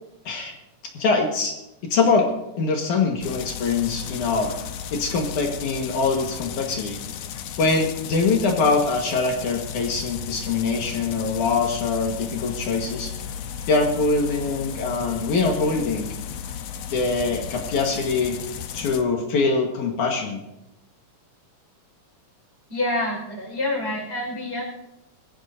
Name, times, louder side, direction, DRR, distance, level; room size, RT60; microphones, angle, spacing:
voice 1, 1.0-1.6 1.9-2.3 2.6-4.5 4.9-7.0 7.6-13.1 13.7-16.1 16.9-18.4 18.7-20.4, left 4 dB, 65° left, 1 dB, 2.8 m, -23 dB
sound 1, 3.2-19.0, left 8 dB, 90° left, 1.4 m, -35 dB
voice 2, 22.7-24.6, left 1 dB, 15° left, -1 dB, 4.9 m, -27 dB
21.5 x 15.0 x 2.7 m, 0.90 s
omnidirectional pair, 4.0 m